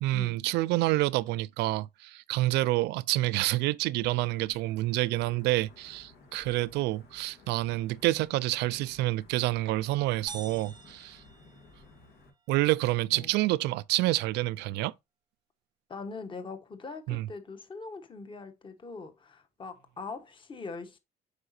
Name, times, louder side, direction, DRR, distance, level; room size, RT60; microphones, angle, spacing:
voice 1, 0.0-11.2 12.5-14.9 17.1-17.3, right 18 dB, 85° right, 0.4 m, -28 dB
Wind / Thunder / Rain, 4.0-12.3, left 3 dB, 85° left, 2.5 m, -56 dB
sound 1, 10.3-12.2, right 5 dB, 25° right, 0.4 m, -47 dB
voice 2, 15.9-21.0, left 4 dB, 30° left, 1.1 m, -42 dB
8.0 x 5.0 x 2.7 m
cardioid pair, 110°, 17 cm